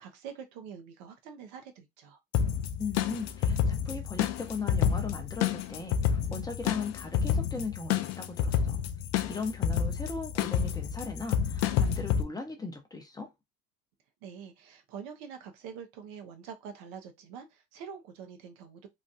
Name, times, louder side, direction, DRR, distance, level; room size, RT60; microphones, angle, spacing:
voice 1, 0.0-2.2 14.2-18.9, right 7 dB, 75° right, 0.9 m, -45 dB
sound 1, 2.3-12.2, left 8 dB, 55° left, 0.5 m, -29 dB
voice 2, 2.8-8.8 9.3-13.3, left 4 dB, 10° left, 0.7 m, -38 dB
3.3 x 2.3 x 2.6 m
supercardioid pair, 105°, 31 cm